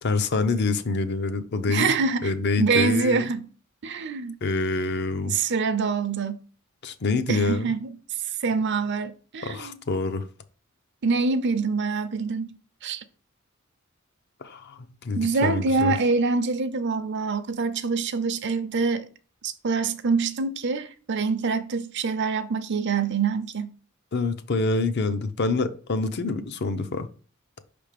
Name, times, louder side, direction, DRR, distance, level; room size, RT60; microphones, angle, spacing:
voice 1, 0.0-3.3 4.4-5.3 6.8-7.7 9.4-10.2 14.4-15.9 24.1-27.1, left 3 dB, 55° left, 0.6 m, -26 dB
voice 2, 1.7-3.5 3.8-4.3 5.3-6.4 7.3-8.0 8.4-9.7 11.0-12.6 12.8-13.0 15.2-19.1 19.4-23.7, right 4 dB, 60° right, 0.6 m, -25 dB
5.7 x 3.4 x 5.0 m
head